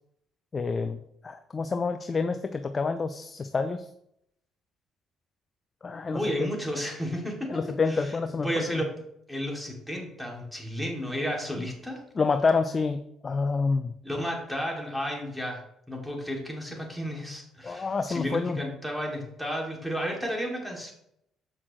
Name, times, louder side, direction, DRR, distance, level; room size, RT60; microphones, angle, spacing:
voice 1, 0.5-1.0 1.2-3.8 5.8-6.2 7.5-8.8 12.2-13.0 13.2-13.9 17.6-18.6, left 4 dB, 35° left, 9 dB, 0.5 m, -27 dB
voice 2, 6.1-8.2 8.4-8.9 9.3-12.0 14.0-15.6 15.9-20.9, equal, 5° right, -1 dB, 2.6 m, -32 dB
7.8 x 5.9 x 3.2 m, 0.75 s
supercardioid pair, 65°, 0 cm